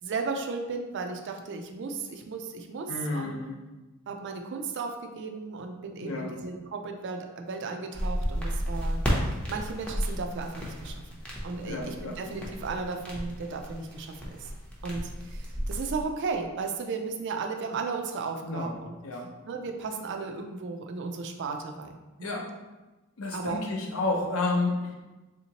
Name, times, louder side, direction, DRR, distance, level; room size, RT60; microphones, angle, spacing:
voice 1, 0.0-3.4 4.1-9.0 9.5-11.0 11.4-14.5 14.8-19.0 19.5-22.4 23.3-23.6, right 4 dB, 55° right, 4 dB, 0.4 m, -35 dB
voice 2, 2.9-3.6 6.0-6.3 11.6-12.2 18.4-18.8 19.0-19.3 22.2-22.5 23.2-24.9, left 2 dB, 65° left, 1 dB, 0.6 m, -30 dB
sound 1, 7.9-16.0, equal, 5° left, 0.5 m, -33 dB
3.5 x 2.8 x 2.8 m, 1.1 s
head